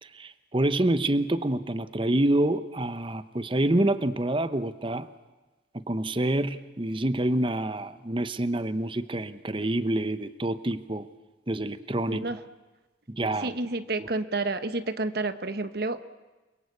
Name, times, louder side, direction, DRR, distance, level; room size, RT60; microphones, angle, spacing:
voice 1, 0.0-5.1 5.7-11.1 11.5-12.2 13.1-13.5 14.0-14.1, right 1 dB, 30° right, 12 dB, 0.9 m, -27 dB
voice 2, 12.1-12.4 13.4-16.0, right 2 dB, 55° right, 11 dB, 1.1 m, -30 dB
29.5 x 22.5 x 8.4 m, 1.2 s
head